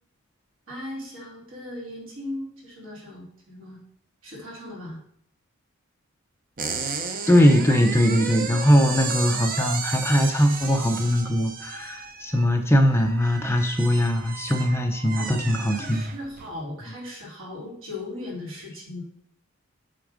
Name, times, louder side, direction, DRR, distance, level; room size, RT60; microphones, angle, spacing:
voice 1, 0.7-3.8 4.2-5.0 8.9-9.1 15.2-19.0, left 1 dB, 75° right, -3 dB, 2.7 m, -38 dB
sound 1, 6.6-16.5, right 5 dB, 40° right, 0.6 m, -34 dB
voice 2, 7.3-16.1, equal, 10° left, 4 dB, 0.5 m, -21 dB
8.2 x 3.5 x 5.0 m, 0.66 s
head